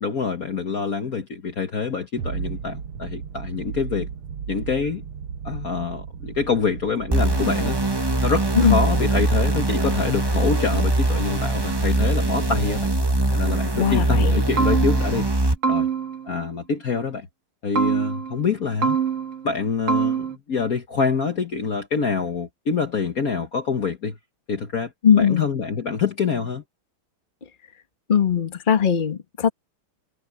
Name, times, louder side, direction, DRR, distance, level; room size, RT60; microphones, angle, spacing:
voice 1, 0.0-4.1 4.5-5.0 5.4-7.8 8.2-12.9 13.3-15.3 15.7-15.9 16.3-17.3 17.6-19.0 19.4-24.2 24.5-24.9 25.2-26.6, left 5 dB, 45° left, 1.5 m, -26 dB
sound 1, 2.2-13.4, right 7 dB, 75° right, 2.0 m, -36 dB
sound 2, 7.1-15.6, right 2 dB, 15° right, 0.8 m, -22 dB
voice 2, 13.7-14.4 25.0-25.4 28.1-29.5, left 7 dB, 25° left, 1.4 m, -19 dB
sound 3, 14.2-14.3 14.6-15.3 15.6-16.3 17.7-18.4 18.8-19.5 19.9-20.3, right 6 dB, 45° right, 1.3 m, -24 dB
omnidirectional pair, 2.4 m